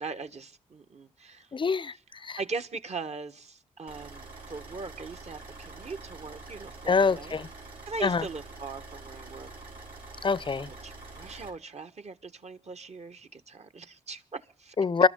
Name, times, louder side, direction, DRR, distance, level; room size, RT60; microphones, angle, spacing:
voice 1, 0.0-1.5 2.4-7.4 7.8-9.5 10.5-14.7, right 4 dB, 45° right, 1.5 m, -40 dB
voice 2, 1.5-2.4 6.9-7.5 8.0-8.3 10.2-10.7 14.8-15.1, left 5 dB, 35° left, 0.7 m, -25 dB
sound 1, 3.9-11.5, right 3 dB, 80° right, 4.8 m, -46 dB
25.5 x 13.0 x 3.9 m
hypercardioid pair, 45°, 15 cm